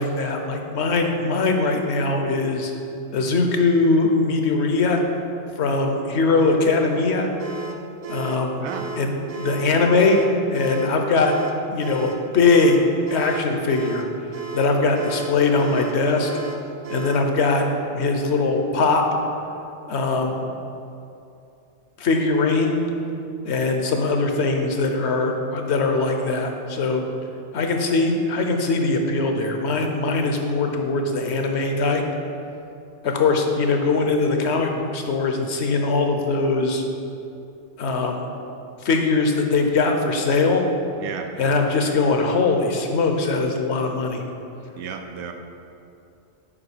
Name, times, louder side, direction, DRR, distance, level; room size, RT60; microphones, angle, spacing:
voice 1, 0.0-2.7 3.1-5.0 5.6-7.3 8.1-8.6 9.0-10.2 10.5-11.3 11.7-14.1 14.5-16.3 16.9-17.6 17.9-19.0 19.9-20.5 22.0-22.8 23.4-27.1 27.5-32.0 33.0-36.8 37.8-38.3 38.8-40.6 41.4-44.2, left 3 dB, 70° left, 4 dB, 1.0 m, -21 dB
sound 1, 7.4-17.3, right 4 dB, 45° right, 0.5 m, -35 dB
voice 2, 44.8-45.3, right 7 dB, 80° right, 5 dB, 0.9 m, -33 dB
7.6 x 4.6 x 4.9 m, 2.7 s
omnidirectional pair, 1.2 m